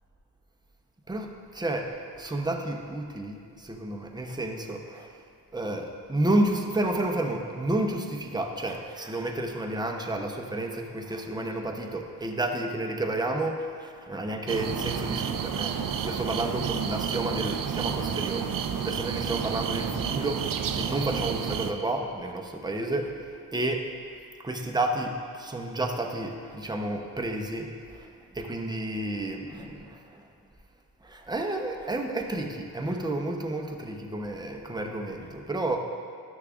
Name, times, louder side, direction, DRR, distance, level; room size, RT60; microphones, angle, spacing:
voice 1, 1.1-5.1 5.5-18.5 18.8-23.9 24.4-30.3 31.0-35.8, right 1 dB, 10° right, 2 dB, 0.7 m, -31 dB
sound 1, 14.5-21.7, right 7 dB, 55° right, 0.5 m, -30 dB
12.0 x 6.6 x 2.5 m, 2.2 s
cardioid pair, 85°, 40 cm